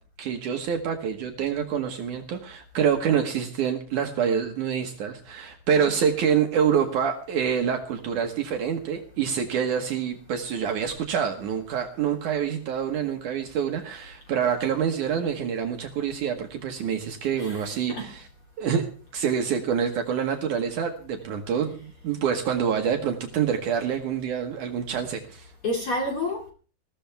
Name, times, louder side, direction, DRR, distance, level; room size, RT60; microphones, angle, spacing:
voice 1, 0.2-18.3 18.6-18.9 19.1-25.5, right 7 dB, 70° right, 3 dB, 2.8 m, -26 dB
voice 2, 17.4-18.1 25.6-26.5, left 1 dB, 45° left, 1 dB, 3.4 m, -30 dB
21.0 x 14.5 x 3.5 m, 0.39 s
omnidirectional pair, 3.7 m